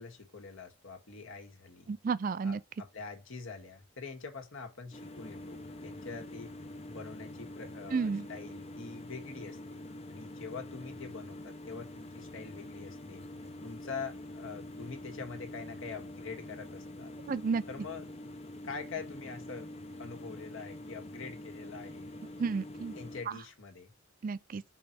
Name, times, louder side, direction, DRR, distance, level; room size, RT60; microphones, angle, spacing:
voice 1, 0.0-1.9 2.4-6.5 6.9-9.8 10.1-13.2 13.6-17.1 17.7-18.1 18.6-19.7 20.0-22.1 22.9-23.9, left 4 dB, 65° left, 1.7 m, -44 dB
voice 2, 1.9-2.6 7.9-8.3 17.3-17.6 22.4-23.0 24.2-24.6, right 5 dB, 40° right, 0.3 m, -32 dB
sound 1, 4.9-23.2, left 1 dB, 30° left, 0.7 m, -45 dB
5.3 x 4.6 x 4.1 m
head